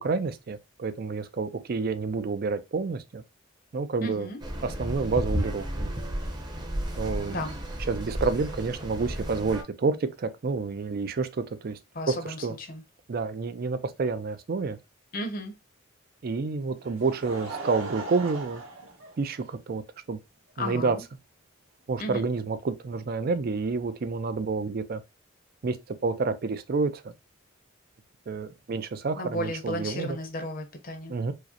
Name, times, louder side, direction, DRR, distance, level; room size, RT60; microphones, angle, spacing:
voice 1, 0.0-3.2 3.7-4.3 4.6-5.9 7.0-7.4 7.9-11.8 12.1-12.5 13.1-14.8 16.2-18.6 19.2-19.8 20.1-20.2 20.6-21.0 21.9-25.0 25.6-25.8 26.0-27.1 28.3-30.2 31.1-31.3, right 4 dB, 50° right, 0.4 m, -29 dB
voice 2, 4.0-4.4 7.3-7.6 11.9-12.8 15.1-15.5 20.6-21.0 22.0-22.2 29.2-31.2, left 1 dB, 45° left, 0.7 m, -34 dB
sound 1, 4.4-9.6, equal, 20° right, 0.7 m, -33 dB
Laughter, 16.5-19.8 20.6-20.7 22.1-22.2, right 2 dB, 85° right, 1.5 m, -39 dB
4.7 x 2.1 x 2.8 m
head